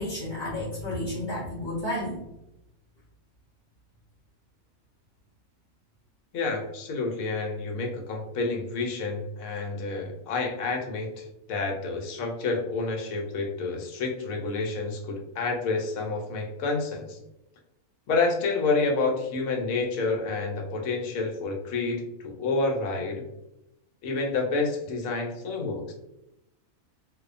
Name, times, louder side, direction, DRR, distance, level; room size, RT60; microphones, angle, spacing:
voice 1, 0.0-2.2, left 1 dB, 50° right, -7 dB, 0.6 m, -31 dB
voice 2, 6.3-17.2 18.1-23.2 24.0-25.9, left 3 dB, 70° left, 1 dB, 1.0 m, -29 dB
2.6 x 2.1 x 2.4 m, 0.87 s
omnidirectional pair, 1.6 m